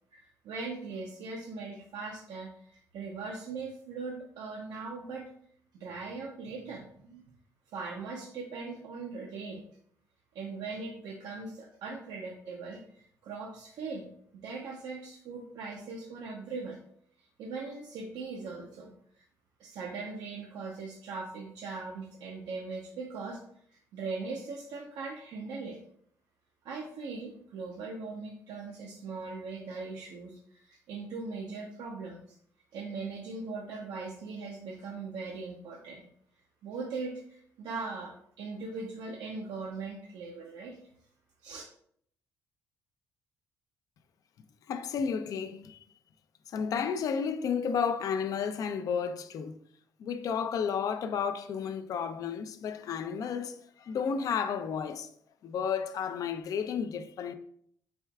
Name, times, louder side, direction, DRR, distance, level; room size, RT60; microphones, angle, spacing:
voice 1, 0.1-5.3 5.7-7.2 7.7-9.6 10.3-14.1 14.3-16.8 17.2-18.9 19.1-19.2 19.6-23.4 23.9-25.8 26.6-32.2 32.7-36.0 36.6-40.8 41.4-41.6, right 4 dB, 85° right, 0.6 m, -40 dB
voice 2, 44.7-45.8 46.5-49.6 50.0-55.1 55.4-57.3, left 6 dB, 65° left, 0.4 m, -32 dB
4.7 x 4.3 x 2.3 m
cardioid pair, 100°, 7 cm